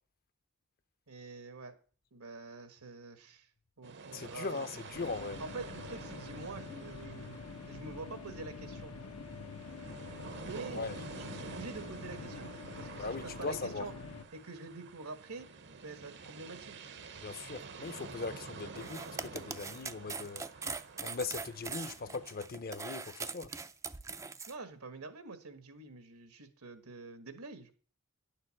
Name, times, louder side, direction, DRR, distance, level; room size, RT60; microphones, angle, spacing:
voice 1, 1.1-1.8 2.1-3.5 3.8-4.7 5.4-8.9 10.4-13.9 14.3-15.5 15.8-16.8 24.5-27.7, right 3 dB, 80° right, 1.6 m, -46 dB
sound 1, 3.8-22.3, right 4 dB, 55° right, 0.9 m, -49 dB
voice 2, 4.1-5.4 10.7-10.9 13.0-13.9 17.2-20.4 21.0-23.5, left 4 dB, 45° left, 0.7 m, -39 dB
sound 2, 4.9-14.2, left 4 dB, 85° left, 1.0 m, -46 dB
sound 3, 18.8-24.5, right 4 dB, 15° right, 0.4 m, -41 dB
10.5 x 6.6 x 6.4 m
head